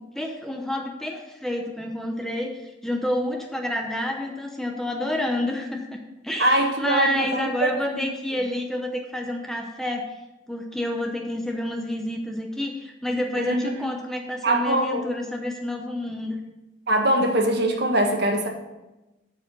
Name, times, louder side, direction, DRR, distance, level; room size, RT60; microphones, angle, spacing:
voice 1, 0.0-6.0 6.2-10.1 10.5-16.4, left 1 dB, ahead, 2 dB, 0.7 m, -29 dB
voice 2, 6.4-7.7 13.4-13.9 14.4-15.1 16.9-18.5, right 1 dB, 55° right, 3 dB, 1.4 m, -22 dB
12.5 x 4.9 x 5.3 m, 1.0 s
head